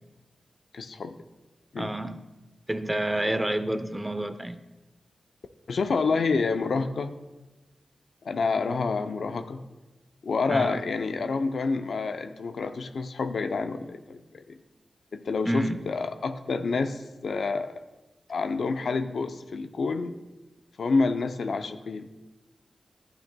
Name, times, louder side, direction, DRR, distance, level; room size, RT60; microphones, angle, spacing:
voice 1, 0.7-1.2 1.7-1.9 5.7-7.2 8.2-9.6 10.2-14.6 15.1-17.8 18.3-20.2 20.8-22.1, left 4 dB, 75° left, 8 dB, 0.5 m, -28 dB
voice 2, 1.8-2.2 2.7-4.6 10.5-10.8 15.5-15.8, right 1 dB, 20° right, 10 dB, 0.6 m, -28 dB
12.0 x 9.0 x 2.2 m, 1.1 s
cardioid pair, 45°, 0 cm